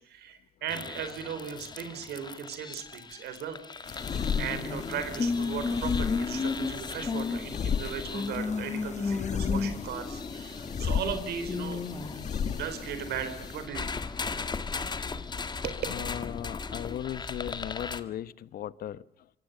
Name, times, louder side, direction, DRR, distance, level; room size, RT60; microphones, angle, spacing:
voice 1, 0.0-4.1 4.4-11.8 12.5-14.0 15.6-15.8, right 8 dB, 75° right, 9 dB, 4.2 m, -37 dB
sound 1, 0.7-18.0, left 4 dB, 25° left, 1.9 m, -35 dB
sound 2, 3.9-13.7, left 7 dB, 45° left, 2.0 m, -35 dB
voice 2, 15.9-19.3, left 11 dB, 60° left, 17 dB, 1.0 m, -37 dB
25.5 x 25.0 x 6.8 m, 0.70 s
cardioid pair, 110°, 17 cm